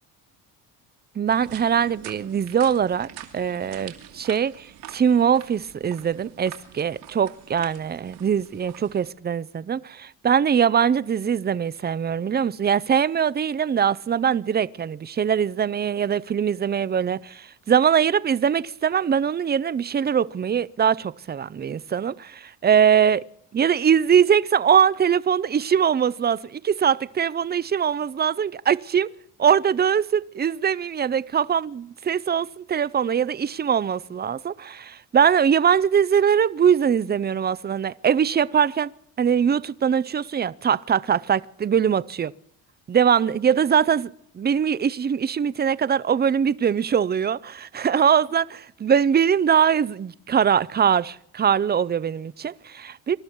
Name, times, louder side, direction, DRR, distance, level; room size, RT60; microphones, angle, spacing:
voice 1, 1.2-3.1 3.3-23.2 23.5-29.1 29.4-38.9 39.2-42.3 42.9-53.2, right 8 dB, 25° right, 0.6 m, -22 dB
sound 1, 1.3-9.1, right 11 dB, 80° right, 2.6 m, -45 dB
25.5 x 12.0 x 4.6 m
supercardioid pair, 75°, 42 cm